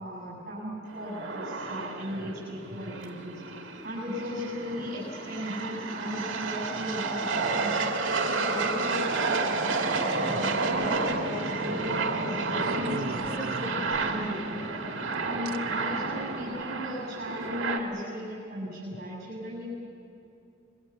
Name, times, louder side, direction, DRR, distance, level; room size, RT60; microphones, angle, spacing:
voice 1, 0.0-3.5 3.8-7.9 8.2-9.7 10.2-14.8 15.3-19.6, equal, 40° right, -6 dB, 7.7 m, -36 dB
sound 1, 0.9-17.8, right 3 dB, 60° right, 2.5 m, -31 dB
sound 2, 11.1-11.2 12.6-14.3 15.5-15.6 16.4-16.6, right 3 dB, 80° right, 1.1 m, -39 dB
27.0 x 22.0 x 7.5 m, 2.8 s
head